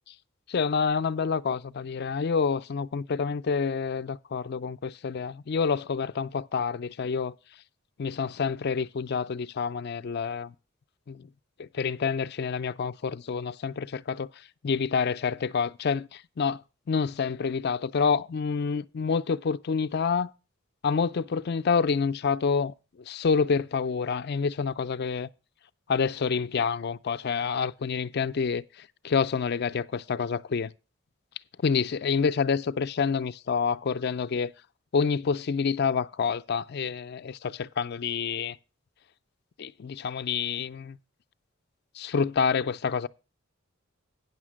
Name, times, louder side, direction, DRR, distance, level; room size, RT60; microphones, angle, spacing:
voice 1, 0.5-7.3 8.0-10.5 11.1-11.3 11.6-16.6 16.9-20.3 20.8-22.7 23.1-25.3 25.9-30.7 31.6-34.5 34.9-38.6 39.6-41.0 41.9-43.1, left 5 dB, 50° left, 0.4 m, -28 dB
9.4 x 6.5 x 6.2 m
head